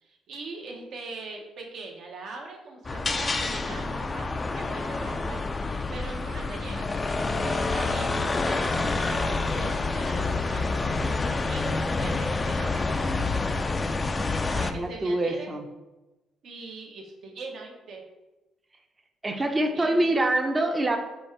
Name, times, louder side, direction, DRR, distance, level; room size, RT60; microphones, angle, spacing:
voice 1, 0.0-6.9 7.2-10.9 11.5-13.1 14.5-15.5 16.4-18.0 19.6-20.1, right 3 dB, 70° right, 1 dB, 0.8 m, -41 dB
sound 1, 2.8-14.7, left 3 dB, 30° left, 0.3 m, -28 dB
voice 2, 14.6-15.6 19.2-21.0, right 1 dB, 25° right, 4 dB, 0.5 m, -25 dB
4.2 x 2.4 x 4.4 m, 1.1 s
cardioid pair, 90°, 0 cm